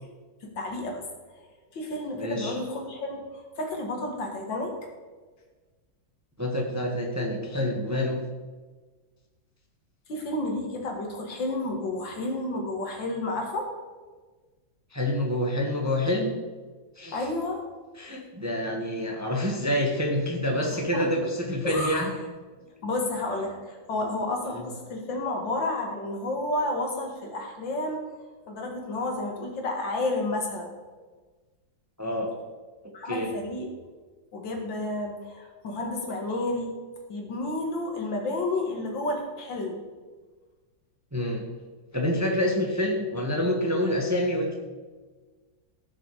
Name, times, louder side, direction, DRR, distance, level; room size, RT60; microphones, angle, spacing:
voice 1, 0.4-1.0 1.7-4.8 10.1-13.7 17.1-17.6 20.7-21.3 21.6-22.1 22.8-28.0 28.5-30.7 32.9-33.7 34.3-36.7 37.1-39.8, left 2 dB, 75° left, 1 dB, 2.6 m, -31 dB
voice 2, 2.1-2.6 6.4-8.2 14.9-16.3 17.0-17.3 18.0-22.1 24.5-24.6 32.0-32.3 32.8-33.3 41.1-41.4 41.9-44.6, left 1 dB, 10° right, 1 dB, 1.2 m, -27 dB
16.5 x 6.6 x 4.9 m, 1.3 s
omnidirectional pair, 2.1 m